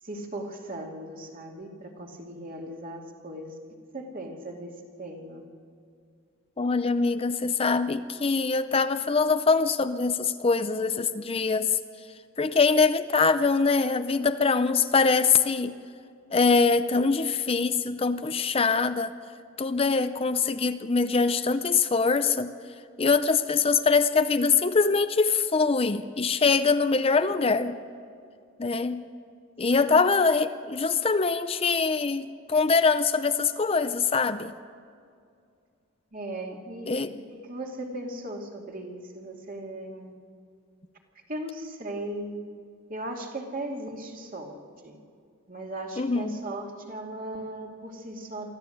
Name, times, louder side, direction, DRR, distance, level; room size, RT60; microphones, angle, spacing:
voice 1, 0.0-3.6 3.9-5.5 29.7-29.8 36.1-40.1 41.3-42.4 42.9-44.5 44.8-45.0 45.5-48.5, right 1 dB, 40° right, 1 dB, 2.6 m, -37 dB
voice 2, 6.6-11.8 12.4-15.7 16.3-19.2 19.6-22.5 23.0-27.8 28.6-29.0 29.6-34.5 36.9-37.1 46.0-46.4, left 4 dB, 30° left, 10 dB, 0.5 m, -23 dB
24.0 x 14.5 x 8.0 m, 2.4 s
head